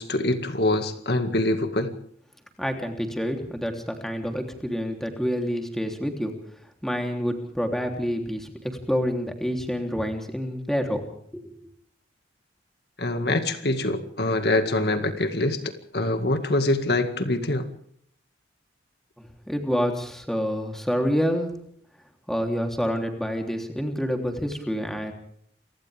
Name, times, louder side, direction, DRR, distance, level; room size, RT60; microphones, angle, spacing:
voice 1, 0.0-2.0 13.0-17.7, left 2 dB, 60° left, 7 dB, 2.1 m, -24 dB
voice 2, 2.6-6.3 6.8-11.0 11.3-11.5 19.2-21.5 22.3-25.1, equal, ahead, 3 dB, 3.3 m, -28 dB
29.0 x 25.0 x 3.6 m, 0.65 s
head